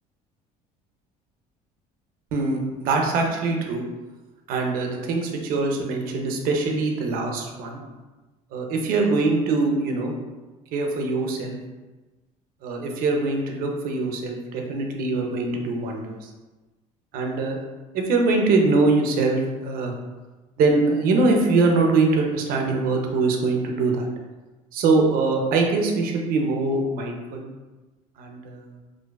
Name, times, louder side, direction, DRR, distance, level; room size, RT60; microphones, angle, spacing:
voice 1, 2.3-3.8 4.5-7.8 8.5-10.1 10.7-11.6 12.6-16.3 17.1-17.6 17.9-19.9 20.6-24.1 24.7-27.5 28.2-28.7, right 3 dB, 65° right, 2 dB, 0.5 m, -23 dB
2.5 x 2.2 x 2.3 m, 1.2 s
cardioid pair, 110°, 16 cm